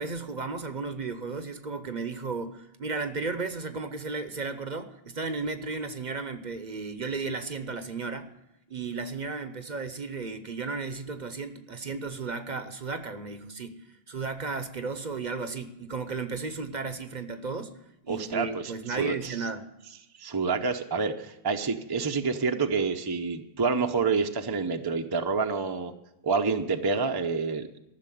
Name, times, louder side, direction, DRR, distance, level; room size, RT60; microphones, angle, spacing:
voice 1, 0.0-8.3 8.7-17.8 18.0-19.7, right 4 dB, 45° right, 10 dB, 0.9 m, -34 dB
voice 2, 18.1-19.4 20.2-25.9 26.2-27.8, right 4 dB, 25° right, 5 dB, 0.7 m, -28 dB
14.0 x 6.7 x 9.1 m, 0.90 s
omnidirectional pair, 1.1 m